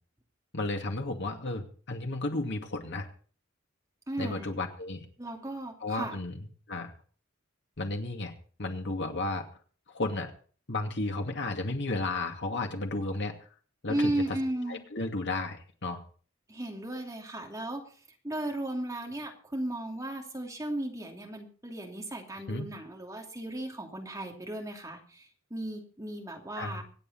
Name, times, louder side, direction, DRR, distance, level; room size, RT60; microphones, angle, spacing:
voice 1, 0.5-3.1 4.2-5.1 5.8-6.9 7.8-8.3 8.6-9.5 9.9-10.3 10.7-13.3 13.8-14.1 14.7-16.0 22.5-22.6 26.6-26.8, left 2 dB, 60° left, 4 dB, 2.4 m, -33 dB
voice 2, 4.1-4.5 5.2-6.2 13.9-14.8 16.5-17.8 18.2-26.8, right 1 dB, 15° right, 1 dB, 2.8 m, -35 dB
25.0 x 8.6 x 4.2 m, 0.42 s
head